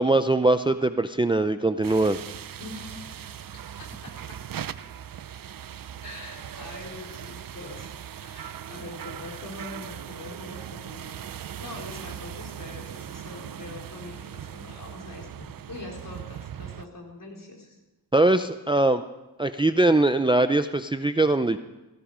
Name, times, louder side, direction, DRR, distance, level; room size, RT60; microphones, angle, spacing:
voice 1, 0.0-2.2 18.1-19.0 19.4-21.6, right 2 dB, 10° right, 10 dB, 0.5 m, -21 dB
sound 1, 1.8-16.8, right 9 dB, 55° right, 0.6 m, -39 dB
voice 2, 2.6-4.4 6.0-7.9 8.2-11.2 11.6-17.8, left 2 dB, 50° left, 0 dB, 4.5 m, -43 dB
18.0 x 16.0 x 5.0 m, 1.1 s
wide cardioid pair, 125°, 40 cm